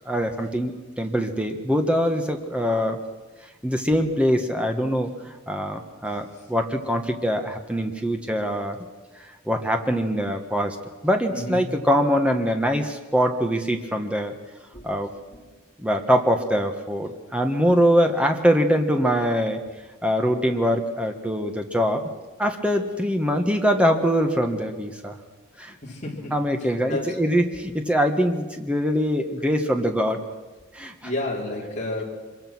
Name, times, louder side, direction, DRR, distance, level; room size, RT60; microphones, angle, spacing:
voice 1, 0.0-3.0 3.6-8.8 9.4-10.8 11.0-14.3 14.8-15.1 15.8-19.6 20.0-22.1 22.4-25.2 25.6-25.7 26.3-30.2 30.7-31.1, equal, 5° right, 4 dB, 1.5 m, -23 dB
voice 2, 11.3-11.8 14.7-14.9 15.3-15.6 25.8-27.2 31.0-32.0, left 1 dB, 35° left, -2 dB, 4.5 m, -32 dB
25.5 x 22.5 x 6.2 m, 1.3 s
head